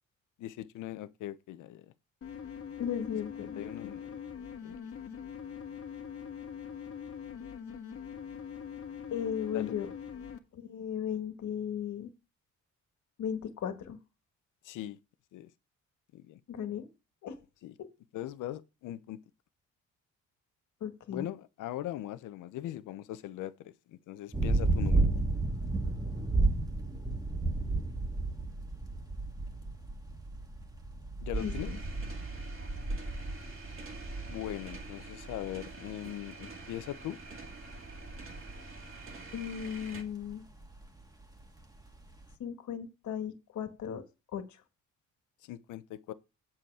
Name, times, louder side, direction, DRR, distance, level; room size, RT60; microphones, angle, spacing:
voice 1, 0.4-1.9 3.6-4.1 4.6-4.7 9.5-9.8 14.6-15.0 15.3-15.5 16.1-16.4 17.6-17.7 18.1-19.2 21.1-25.1 31.2-31.7 34.3-37.2 45.4-46.1, left 13 dB, 85° left, 0.9 m, -40 dB
sound 1, 2.2-10.4, left 7 dB, 50° left, 1.7 m, -43 dB
voice 2, 2.8-4.0 9.1-9.9 10.5-12.1 13.2-14.0 16.5-16.9 17.2-17.4 17.8-17.9 20.8-21.3 31.4-31.8 39.3-40.5 42.4-44.0 44.3-44.6, left 8 dB, 70° left, 1.9 m, -36 dB
sound 2, 24.3-42.3, right 2 dB, 15° right, 1.9 m, -33 dB
sound 3, 31.3-40.0, right 4 dB, 45° right, 2.4 m, -48 dB
7.9 x 7.3 x 4.9 m
cardioid pair, 90°, 30 cm